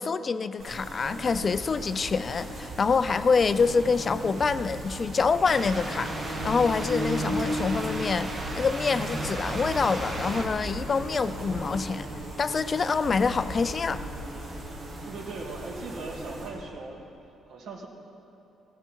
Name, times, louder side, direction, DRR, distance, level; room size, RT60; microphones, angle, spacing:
voice 1, 0.0-12.1 12.4-14.0, left 5 dB, 30° left, 13 dB, 0.4 m, -26 dB
sound 1, 0.6-16.5, right 1 dB, 50° right, 4.6 m, -36 dB
sound 2, 3.3-12.2, left 1 dB, 10° left, 1.0 m, -45 dB
sound 3, 5.5-10.5, right 1 dB, 30° right, 1.9 m, -36 dB
voice 2, 15.0-17.0 17.5-17.9, right 3 dB, 65° right, 0 dB, 2.2 m, -39 dB
17.5 x 16.5 x 4.6 m, 2.9 s
cardioid pair, 160°, 0 cm